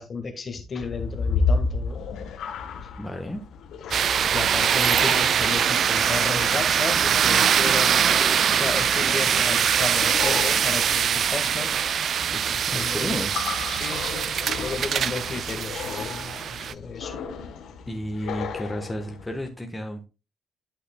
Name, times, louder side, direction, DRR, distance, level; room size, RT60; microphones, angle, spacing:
voice 1, 0.0-2.0 2.8-2.9 3.9-8.2 8.5-13.3 13.6-17.2, left 4 dB, 40° left, 1.6 m, -34 dB
sound 1, 0.8-19.5, left 4 dB, 80° left, 1.1 m, -33 dB
voice 2, 3.0-3.4 12.7-13.3 17.9-20.1, equal, 10° left, 1.1 m, -32 dB
sound 2, 3.9-16.7, right 8 dB, 60° right, 0.3 m, -23 dB
11.5 x 5.8 x 2.2 m
cardioid pair, 90°, 0 cm